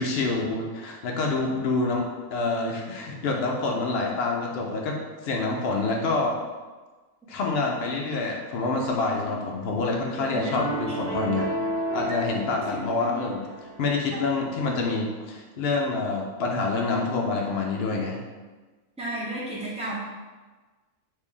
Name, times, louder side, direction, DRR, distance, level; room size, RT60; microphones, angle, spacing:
voice 1, 0.0-6.4 7.3-11.5 11.9-13.4 13.8-18.2, left 3 dB, 85° left, 0 dB, 0.5 m, -27 dB
voice 2, 10.2-10.6 10.9-11.0 12.7-13.2 14.1-14.2 19.0-20.0, right 1 dB, 10° right, -7 dB, 0.3 m, -33 dB
sound 1, 10.6-13.8, right 2 dB, 90° right, 1.5 m, -31 dB
3.2 x 2.5 x 3.6 m, 1.3 s
omnidirectional pair, 1.6 m